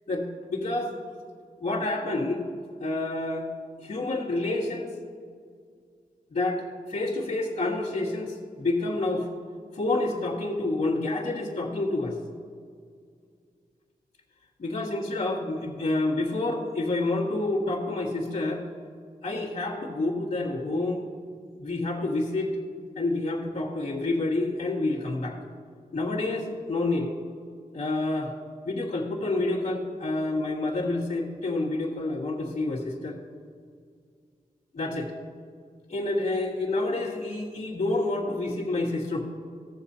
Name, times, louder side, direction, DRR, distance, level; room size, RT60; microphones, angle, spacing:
voice 1, 0.1-0.9 1.6-2.5 2.8-3.5 3.8-4.9 6.3-6.6 6.9-9.3 9.7-12.2 14.6-18.7 19.2-21.1 21.6-22.5 23.0-25.4 25.9-27.1 27.7-28.3 28.6-33.2 34.7-35.1 35.9-39.2, left 2 dB, 60° left, -10 dB, 1.8 m, -28 dB
17.5 x 7.1 x 2.8 m, 2.1 s
wide cardioid pair, 85°, 15 cm